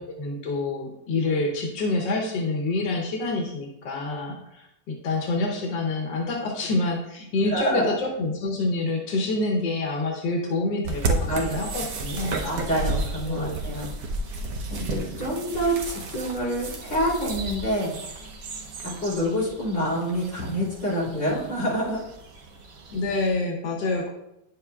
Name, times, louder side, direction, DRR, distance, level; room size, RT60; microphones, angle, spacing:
voice 1, 0.0-12.4 13.2-13.5 22.9-24.1, left 2 dB, 90° left, 1 dB, 1.6 m, -27 dB
voice 2, 7.5-8.0 11.2-11.7 12.4-13.9 14.7-17.9 19.0-22.0, equal, 45° left, -7 dB, 3.3 m, -27 dB
sound 1, 10.8-23.3, right 2 dB, 60° right, 1.1 m, -33 dB
9.5 x 7.1 x 2.3 m, 0.85 s
omnidirectional pair, 1.9 m